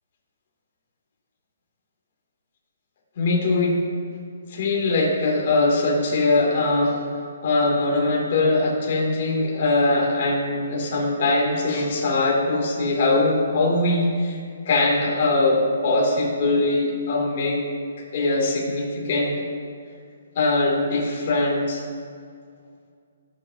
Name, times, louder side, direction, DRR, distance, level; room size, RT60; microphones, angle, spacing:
voice 1, 3.2-3.8 4.5-7.0 7.4-14.4 14.6-17.6 18.1-19.4 20.3-21.8, left 2 dB, 45° left, -3 dB, 2.8 m, -21 dB
18.5 x 7.7 x 2.9 m, 2.2 s
hypercardioid pair, 165°, 0 cm